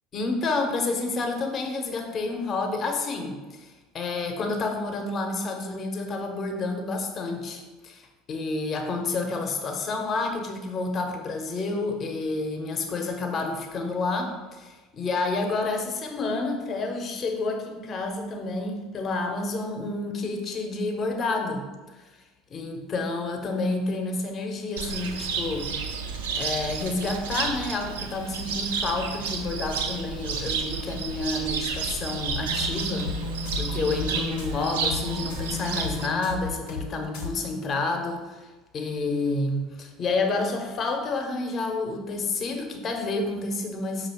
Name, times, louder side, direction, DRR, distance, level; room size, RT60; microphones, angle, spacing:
voice 1, 0.1-21.7 22.5-25.7 26.3-33.1 33.5-38.5 38.7-44.1, left 3 dB, 40° left, 4 dB, 0.6 m, -29 dB
Cricket, 24.8-36.1, right 5 dB, 90° right, 0.4 m, -31 dB
sound 1, 32.3-36.9 37.1-37.3, left 5 dB, 90° left, 0.6 m, -34 dB
5.1 x 2.4 x 3.4 m, 1.2 s
hypercardioid pair, 85°, 0 cm